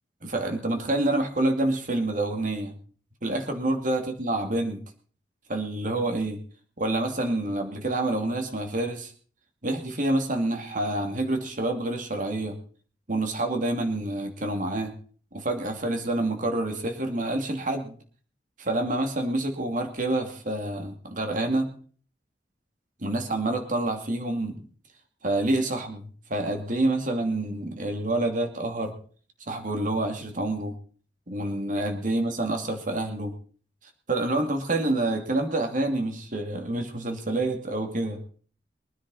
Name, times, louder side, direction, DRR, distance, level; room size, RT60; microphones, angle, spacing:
voice 1, 0.2-2.7 3.2-4.8 5.5-6.4 6.8-9.1 9.6-12.6 13.1-14.9 15.3-17.9 18.6-21.7 23.0-24.6 25.2-29.0 29.5-30.7 31.3-33.3 34.1-38.2, right 2 dB, 45° right, 4 dB, 2.6 m, -27 dB
23.5 x 10.0 x 4.1 m, 0.43 s
head